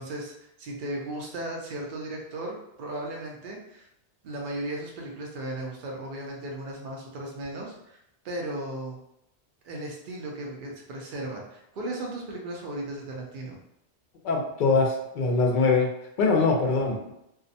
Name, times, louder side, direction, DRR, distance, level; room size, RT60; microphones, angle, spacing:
voice 1, 0.0-3.9 4.2-8.0 8.2-9.0 9.6-13.6, right 1 dB, 55° right, -1 dB, 0.6 m, -36 dB
voice 2, 14.2-15.9 16.2-17.1, left 4 dB, 55° left, 1 dB, 0.6 m, -23 dB
2.5 x 2.1 x 2.6 m, 0.81 s
omnidirectional pair, 1.2 m